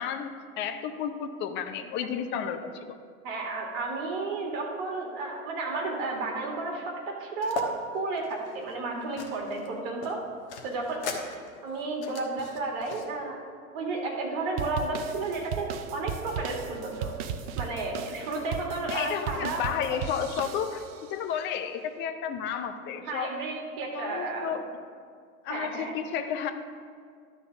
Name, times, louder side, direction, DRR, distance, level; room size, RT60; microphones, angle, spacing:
voice 1, 0.0-3.0 18.9-23.4 23.9-24.7 25.4-26.5, left 8 dB, 25° left, 8 dB, 0.6 m, -32 dB
voice 2, 3.2-6.9 7.2-10.2 10.6-11.2 11.6-13.4 13.7-17.1 17.6-20.0 23.1-24.5 25.5-25.9, right 3 dB, 50° right, 0 dB, 2.2 m, -32 dB
sound 1, 7.4-7.7 8.2-9.7 10.0-13.1, left 4 dB, 55° left, 1.2 m, -38 dB
sound 2, 14.6-21.1, right 7 dB, 30° right, 0.4 m, -37 dB
11.5 x 4.2 x 6.0 m, 2.1 s
figure-of-eight pair, 90°, 42 cm